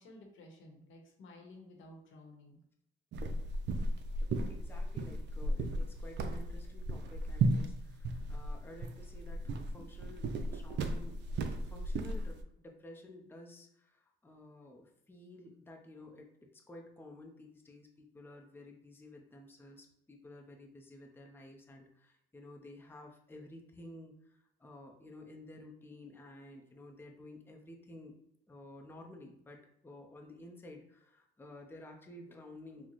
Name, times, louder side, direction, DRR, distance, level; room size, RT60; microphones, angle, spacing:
voice 1, 0.0-2.6 9.8-9.9, left 1 dB, 75° left, 2 dB, 0.8 m, -54 dB
sound 1, 3.1-12.4, right 2 dB, 65° right, 0.4 m, -35 dB
voice 2, 4.3-10.2 10.5-16.3 16.7-28.2 28.5-32.9, left 1 dB, 10° left, 1 dB, 0.5 m, -52 dB
3.9 x 2.0 x 3.0 m, 0.76 s
cardioid pair, 90°, 20 cm